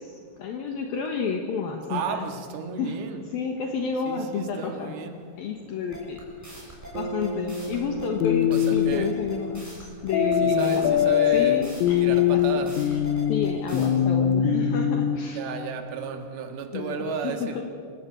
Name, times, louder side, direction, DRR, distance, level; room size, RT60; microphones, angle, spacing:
voice 1, 0.0-2.3 2.8-5.0 5.3-6.5 6.9-13.0 13.3-15.4 16.7-17.6, left 6 dB, 65° left, 3 dB, 2.9 m, -31 dB
voice 2, 1.9-3.2 4.1-5.2 8.5-9.1 10.4-11.7 12.0-12.8 15.3-17.6, right 6 dB, 65° right, 5 dB, 3.4 m, -33 dB
sound 1, 5.9-13.9, equal, 5° right, 6.9 m, -43 dB
Bass guitar, 6.9-11.3, right 1 dB, 30° right, 1.6 m, -37 dB
sound 2, 8.2-9.0 10.1-15.2, left 9 dB, 90° left, 3.6 m, -22 dB
27.0 x 17.0 x 8.1 m, 2.1 s
omnidirectional pair, 5.2 m